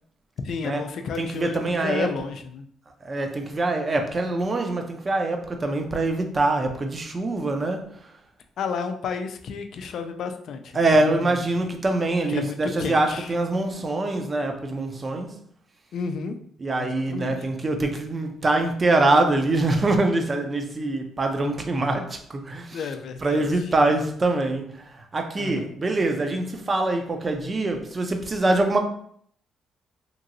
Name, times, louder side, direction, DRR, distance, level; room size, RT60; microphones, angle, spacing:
voice 1, 0.4-2.7 8.6-11.2 12.3-13.3 15.9-16.4 16.8-17.3 22.7-23.4 25.4-25.7, left 5 dB, 65° left, 0.3 m, -32 dB
voice 2, 1.2-2.2 3.0-8.1 10.7-15.4 16.6-22.8 23.2-28.8, right 2 dB, 30° right, 0.5 m, -24 dB
2.9 x 2.7 x 2.6 m
cardioid pair, 90°, 0 cm